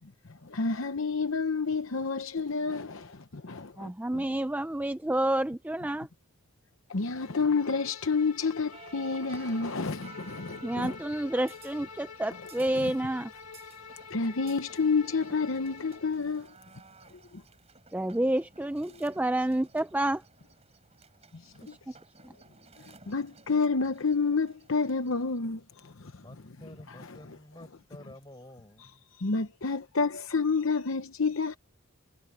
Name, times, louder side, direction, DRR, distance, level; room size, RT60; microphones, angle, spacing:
voice 1, 0.3-4.2 6.9-10.9 14.1-16.5 17.3-17.4 21.3-21.4 21.7-21.8 22.8-26.2 29.2-31.6, left 4 dB, 60° left, 0.9 m, -29 dB
voice 2, 3.8-6.1 10.6-13.3 17.9-20.2 21.9-22.0 22.2-22.3, right 1 dB, 5° right, 0.4 m, -29 dB
Bowed string instrument, 7.1-16.2, left 6 dB, 85° left, 2.0 m, -47 dB
sound 1, 8.7-25.4, right 4 dB, 30° right, 5.7 m, -55 dB
voice 3, 26.2-29.0, left 1 dB, 20° left, 6.2 m, -50 dB
head